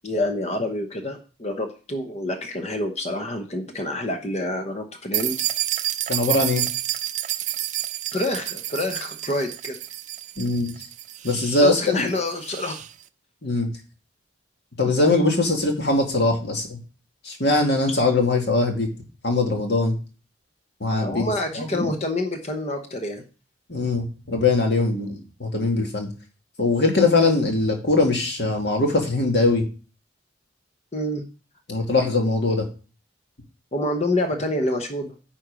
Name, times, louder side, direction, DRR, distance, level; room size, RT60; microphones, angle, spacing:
voice 1, 0.0-5.3 8.1-9.8 11.6-12.8 21.0-23.2 30.9-31.2 33.7-35.1, left 1 dB, 35° left, 6 dB, 0.8 m, -27 dB
sound 1, 5.1-12.9, right 14 dB, 40° right, 0.4 m, -29 dB
voice 2, 6.1-6.6 10.4-10.7 11.2-12.1 13.4-13.7 14.8-16.8 17.2-18.9 19.2-20.0 20.8-21.9 23.7-26.1 26.6-29.7 31.7-32.7, left 2 dB, 60° left, 2 dB, 2.0 m, -21 dB
9.6 x 4.3 x 5.1 m, 0.35 s
head